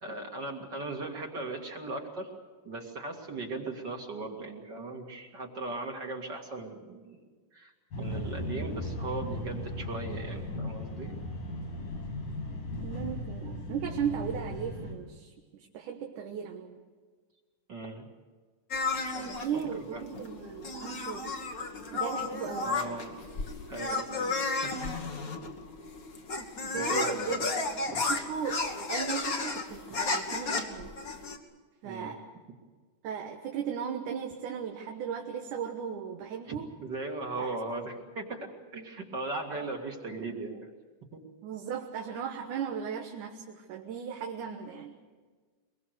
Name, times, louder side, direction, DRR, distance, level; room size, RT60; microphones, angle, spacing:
voice 1, 0.0-2.3 2.6-7.2 7.5-11.1 17.7-18.1 19.0-20.0 22.6-23.2 23.7-25.1 26.7-27.4 27.9-28.1 31.8-32.2 36.5-36.6 36.8-40.7 41.1-41.2, right 2 dB, 35° right, 2 dB, 2.4 m, -38 dB
sound 1, 7.9-14.9, left 1 dB, 90° left, 7.3 m, -37 dB
voice 2, 12.8-16.8 19.4-21.3 21.9-23.1 23.9-24.4 26.6-27.7 28.1-30.9 31.8-32.3 33.0-36.7 37.4-37.6 39.5-39.7 41.4-44.9, right 7 dB, 75° right, 2 dB, 2.8 m, -37 dB
sound 2, 18.7-31.4, left 3 dB, 40° left, 1.3 m, -33 dB
23.0 x 22.5 x 6.6 m, 1.4 s
omnidirectional pair, 3.7 m